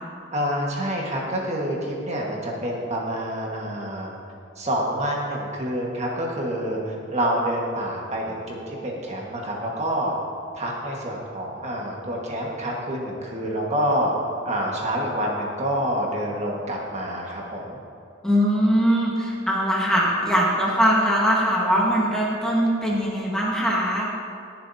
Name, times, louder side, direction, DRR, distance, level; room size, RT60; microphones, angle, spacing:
voice 1, 0.3-4.1 4.6-10.1 10.5-14.1 14.4-17.8, equal, 35° right, -2 dB, 1.6 m, -27 dB
voice 2, 18.2-24.1, equal, 5° left, -5 dB, 1.4 m, -21 dB
21.0 x 7.2 x 2.8 m, 2.5 s
head